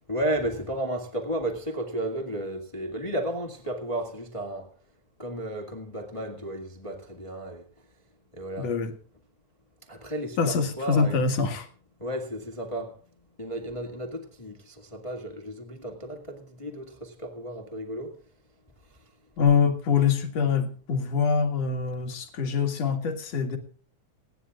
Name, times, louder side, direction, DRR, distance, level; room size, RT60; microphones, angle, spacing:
voice 1, 0.1-4.7 5.2-7.6 8.3-8.7 9.9-11.2 12.0-13.0 13.4-18.2, right 1 dB, 15° left, 1.5 m, -33 dB
voice 2, 8.6-8.9 10.4-11.7 19.4-23.6, left 6 dB, 60° left, 2.9 m, -24 dB
28.5 x 10.0 x 2.4 m
omnidirectional pair, 3.4 m